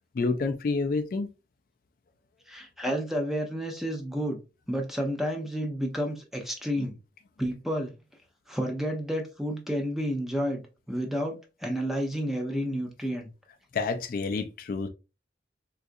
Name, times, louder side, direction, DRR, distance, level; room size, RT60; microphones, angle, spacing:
voice 1, 0.1-1.3 6.8-6.9 13.7-14.9, left 4 dB, 50° left, 0.3 m, -28 dB
voice 2, 2.5-4.4 4.7-7.0 7.4-7.9 8.5-10.6 10.9-13.3, equal, ahead, 0.5 m, -30 dB
3.7 x 2.4 x 2.5 m
head